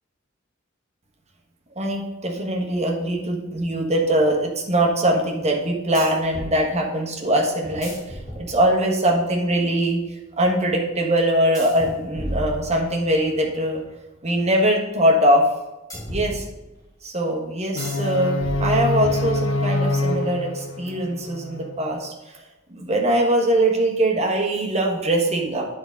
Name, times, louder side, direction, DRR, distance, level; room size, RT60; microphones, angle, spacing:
voice 1, 1.8-13.8 14.2-15.5 16.1-16.4 17.0-22.4 22.7-25.7, right 1 dB, 35° right, 0 dB, 1.4 m, -22 dB
sound 1, 3.5-3.6 5.9-6.6 7.6-8.9 11.5-13.2 15.9-16.9 17.8-18.1 18.4-19.8, equal, 20° left, 3.2 m, -34 dB
sound 2, 17.7-21.8, left 1 dB, 70° left, 0.6 m, -25 dB
9.7 x 4.0 x 5.4 m, 1.0 s
head